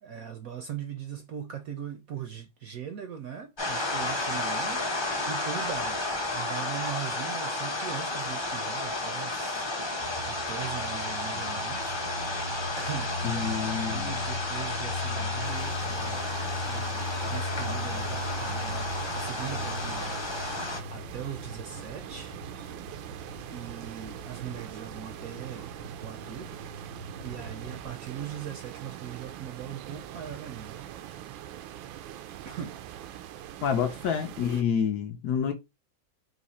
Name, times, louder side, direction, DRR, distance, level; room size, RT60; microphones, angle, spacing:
voice 1, 0.0-12.0 12.4-16.2 16.7-18.9 19.1-22.4 23.5-25.7 26.0-26.5 27.2-30.8 32.4-32.8, right 9 dB, 70° right, 0.8 m, -40 dB
sound 1, 3.6-20.8, left 2 dB, 25° left, 0.5 m, -32 dB
sound 2, 10.0-27.9, left 2 dB, 50° left, 1.4 m, -39 dB
voice 2, 13.2-14.1 33.6-35.5, left 7 dB, 70° left, 0.9 m, -28 dB
sound 3, 15.4-34.6, right 11 dB, 90° right, 1.3 m, -43 dB
4.0 x 2.7 x 4.0 m
omnidirectional pair, 2.0 m